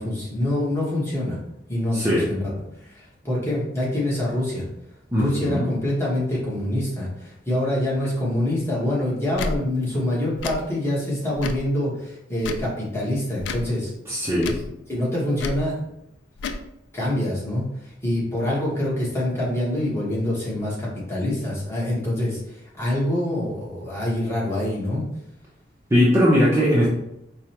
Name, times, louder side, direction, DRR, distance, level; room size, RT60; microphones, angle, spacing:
voice 1, 0.0-1.4 1.7-2.5 2.8-4.7 5.1-13.9 14.9-15.8 16.9-25.1, left 1 dB, 15° left, -7 dB, 1.2 m, -25 dB
voice 2, 1.9-2.3 5.1-5.7 14.1-14.6 25.9-26.9, equal, 15° right, -7 dB, 0.7 m, -19 dB
Tick / Tick-tock, 9.3-9.6 10.3-10.6 11.3-11.7 12.4-12.7 13.4-13.7 14.4-14.7 15.4-15.6 16.4-16.6, left 3 dB, 70° left, 0.3 m, -30 dB
4.8 x 2.3 x 2.9 m, 0.83 s
head